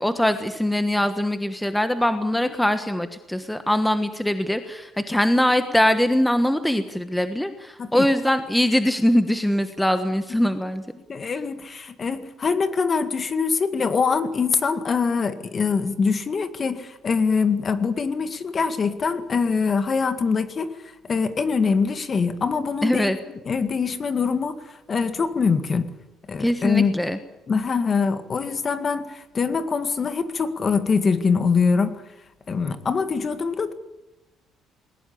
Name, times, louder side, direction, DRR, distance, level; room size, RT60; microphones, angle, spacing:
voice 1, 0.0-10.8 22.8-23.2 26.4-27.2, left 1 dB, 5° left, 9 dB, 1.3 m, -22 dB
voice 2, 11.1-20.7 21.1-23.1 23.5-25.9 26.3-26.9 27.5-31.9 32.5-33.7, left 5 dB, 30° left, 11 dB, 2.0 m, -23 dB
20.5 x 19.5 x 8.7 m, 0.98 s
cardioid pair, 135°, 0 cm